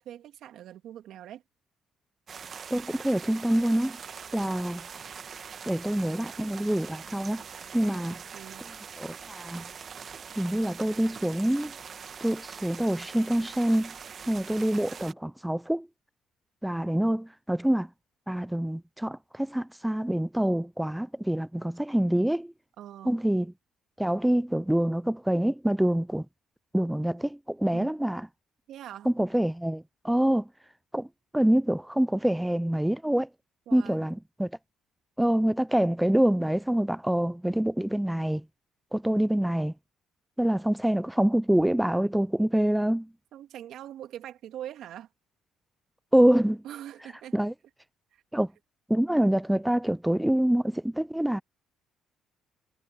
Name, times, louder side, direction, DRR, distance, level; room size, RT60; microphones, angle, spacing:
voice 1, 0.0-1.4 7.8-8.7 22.8-23.2 27.7-27.9 28.7-29.1 33.7-34.0 43.3-45.1 46.6-47.4 48.1-48.2, right 11 dB, 70° right, 2.3 m, -43 dB
sound 1, 2.3-15.1, right 6 dB, 45° right, 1.4 m, -43 dB
voice 2, 2.7-4.0 4.3-4.8 5.7-7.4 7.7-8.2 9.0-9.7 10.4-11.7 12.2-13.9 14.3-15.9 16.6-17.9 18.3-22.5 23.1-23.5 24.0-26.3 26.7-28.3 29.1-30.5 30.9-31.1 31.3-33.3 33.7-34.5 35.2-38.4 38.9-39.7 40.4-43.1 46.1-46.6 47.3-47.5 48.3-48.5 48.9-51.4, right 1 dB, 5° right, 0.4 m, -26 dB
supercardioid pair, 75°, 0 cm